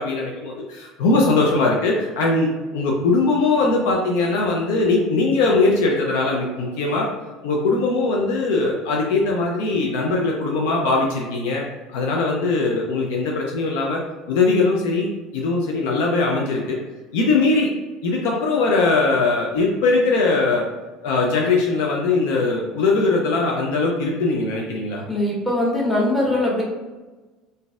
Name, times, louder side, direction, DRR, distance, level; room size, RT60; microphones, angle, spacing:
voice 1, 0.0-7.1 7.4-11.6 11.9-14.0 14.3-16.8 17.1-17.7 18.0-20.7 21.0-25.1, left 3 dB, 70° left, -1 dB, 0.5 m, -20 dB
voice 2, 25.1-26.6, left 1 dB, 10° left, -4 dB, 1.3 m, -21 dB
3.8 x 2.6 x 2.4 m, 1.2 s
hypercardioid pair, 70°, 0 cm